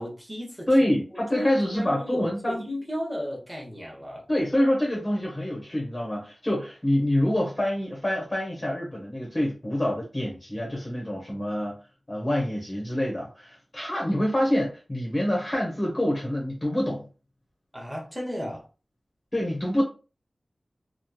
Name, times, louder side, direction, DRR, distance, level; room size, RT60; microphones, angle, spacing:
voice 1, 0.0-0.7 1.3-4.2 17.7-18.7, equal, 5° right, 1.0 m, -34 dB
voice 2, 0.7-2.7 4.3-11.7 12.1-17.1 19.3-19.8, left 1 dB, 30° left, 1.0 m, -26 dB
3.0 x 2.3 x 2.3 m
wide cardioid pair, 70°, 0 cm